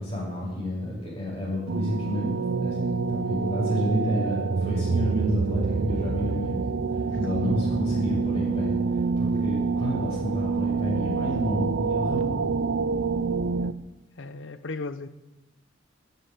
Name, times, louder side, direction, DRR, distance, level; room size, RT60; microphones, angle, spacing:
voice 1, 0.0-12.4, equal, 30° left, 6.7 m, -30 dB
sound 1, 1.7-13.7, right 4 dB, 85° right, 0.6 m, -27 dB
voice 2, 14.2-15.1, left 3 dB, 70° left, 0.8 m, -36 dB
13.0 x 10.5 x 9.6 m
head